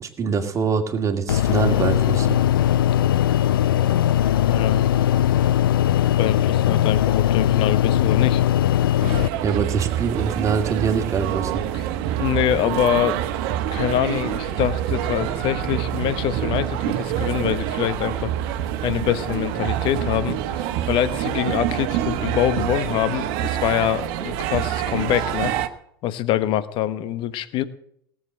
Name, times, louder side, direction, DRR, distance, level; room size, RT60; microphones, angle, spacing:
voice 1, 0.0-2.4 9.4-11.6, right 5 dB, 25° right, 5 dB, 2.1 m, -24 dB
sound 1, 1.3-9.3, left 11 dB, 70° left, 0.5 m, -19 dB
voice 2, 4.4-4.9 6.2-8.4 11.7-11.8 12.2-13.2 13.7-18.3 18.8-20.4 20.9-25.5 26.0-27.6, left 12 dB, 45° left, 14 dB, 1.2 m, -24 dB
sound 2, 9.0-25.7, right 11 dB, 55° right, 1.3 m, -26 dB
18.0 x 7.6 x 7.7 m, 0.69 s
figure-of-eight pair, 85°, 12 cm